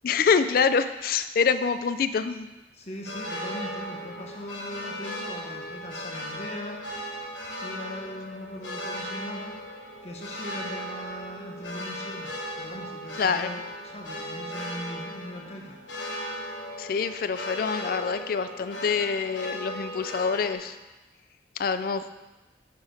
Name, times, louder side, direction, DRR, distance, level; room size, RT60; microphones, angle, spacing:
voice 1, 0.0-2.5 13.2-13.5 16.8-20.7 21.6-22.1, left 5 dB, 50° left, 12 dB, 0.3 m, -26 dB
voice 2, 2.7-6.8 7.6-9.6 10.0-15.8, equal, 35° left, 0 dB, 1.0 m, -40 dB
sound 1, 3.0-20.5, equal, 85° left, 1.2 m, -37 dB
6.7 x 5.0 x 5.1 m, 1.1 s
head